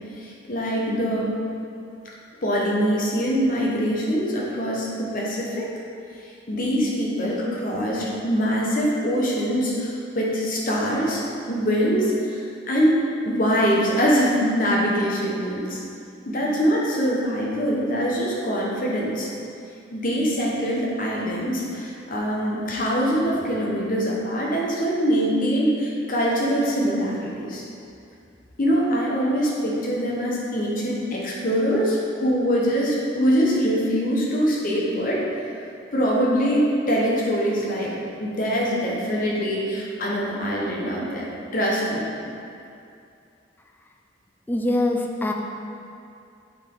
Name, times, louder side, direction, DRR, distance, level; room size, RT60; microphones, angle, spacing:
voice 1, 0.2-1.3 2.0-2.1 2.4-5.7 6.5-15.8 16.2-19.3 19.9-27.6 28.6-35.2 35.9-37.9 38.2-42.1, equal, 45° left, -4 dB, 1.0 m, -23 dB
voice 2, 44.5-45.3, left 1 dB, 10° left, 2 dB, 0.4 m, -23 dB
7.2 x 4.1 x 3.8 m, 2.5 s
head